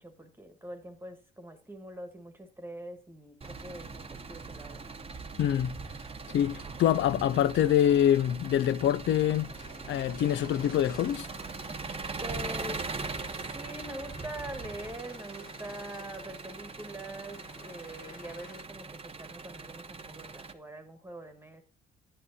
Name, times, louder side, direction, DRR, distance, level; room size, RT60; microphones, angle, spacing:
voice 1, 0.0-4.8 12.2-13.2 13.5-21.6, right 1 dB, 10° right, 1.4 m, -44 dB
Engine, 3.4-20.5, right 4 dB, 30° right, 0.9 m, -41 dB
voice 2, 5.4-5.7 6.3-9.5 9.9-11.3, left 11 dB, 70° left, 0.5 m, -25 dB
sound 1, 9.2-18.6, left 5 dB, 45° left, 1.2 m, -52 dB
10.5 x 8.7 x 2.7 m
cardioid pair, 90°, 20 cm